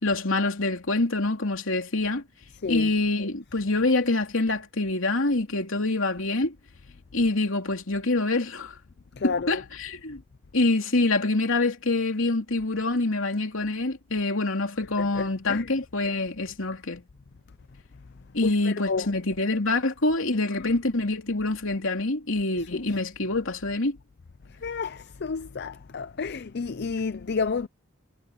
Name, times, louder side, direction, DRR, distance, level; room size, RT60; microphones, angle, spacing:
voice 1, 0.0-2.2 2.7-6.5 7.1-8.8 9.2-10.2 10.5-17.0 18.3-24.0, left 2 dB, 65° left, 3.1 m, -26 dB
voice 2, 9.1-9.6 15.0-15.7 18.4-19.1 20.6-20.8 22.5-22.7 24.6-27.7, left 5 dB, 50° left, 0.5 m, -31 dB
head